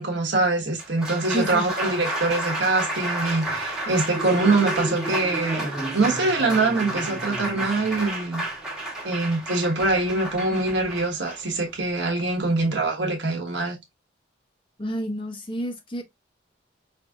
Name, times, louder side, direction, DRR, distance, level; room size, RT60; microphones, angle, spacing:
voice 1, 0.0-5.7 5.9-8.4 9.0-13.8, right 2 dB, 65° right, 1.3 m, -24 dB
Applause, 0.6-12.9, right 1 dB, 5° right, 1.3 m, -31 dB
voice 2, 1.3-1.6 14.8-16.0, equal, 25° left, 0.8 m, -29 dB
5.3 x 2.7 x 2.3 m
head